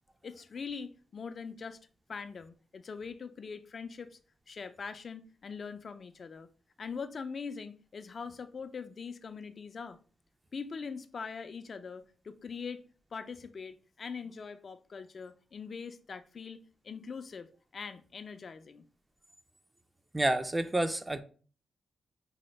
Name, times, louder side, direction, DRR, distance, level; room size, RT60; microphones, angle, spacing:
voice 1, 0.2-1.8 2.1-4.2 4.5-6.5 6.8-10.0 10.5-12.8 13.1-17.5 17.7-18.8, left 5 dB, 50° left, 0.3 m, -42 dB
voice 2, 20.1-21.2, right 1 dB, 20° right, 0.4 m, -29 dB
4.2 x 2.1 x 3.1 m
cardioid pair, 65°, 0 cm